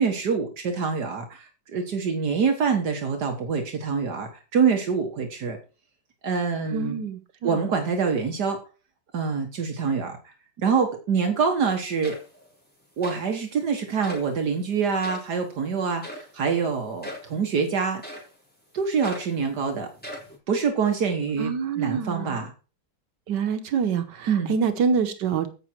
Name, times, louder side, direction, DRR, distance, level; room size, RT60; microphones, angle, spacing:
voice 1, 0.0-5.6 6.2-7.0 7.4-8.6 9.1-10.2 10.6-12.2 13.0-18.2 18.7-19.9 20.5-22.5 24.3-24.6, right 5 dB, 70° right, 5 dB, 2.0 m, -25 dB
voice 2, 6.7-7.7 21.4-22.4 23.3-25.5, right 6 dB, 90° right, 9 dB, 1.8 m, -26 dB
sound 1, 11.7-11.8 12.0-12.5 13.0-13.3 14.0-14.3 15.0-15.3 16.0-16.3 17.0-17.3 18.0-18.4 19.0-19.4 20.0-20.4, equal, 5° left, 3.8 m, -39 dB
15.5 x 6.1 x 4.5 m, 0.35 s
omnidirectional pair, 1.8 m